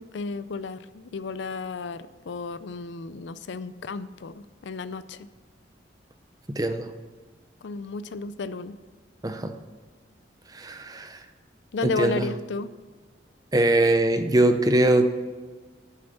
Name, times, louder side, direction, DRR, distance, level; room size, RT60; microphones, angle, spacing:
voice 1, 0.0-5.3 7.6-8.8 11.7-12.7, left 4 dB, 75° left, 14 dB, 0.5 m, -33 dB
voice 2, 6.6-6.9 9.2-9.5 10.6-11.2 11.8-12.2 13.5-15.2, right 1 dB, 20° right, 8 dB, 0.6 m, -22 dB
9.2 x 6.9 x 6.8 m, 1.4 s
head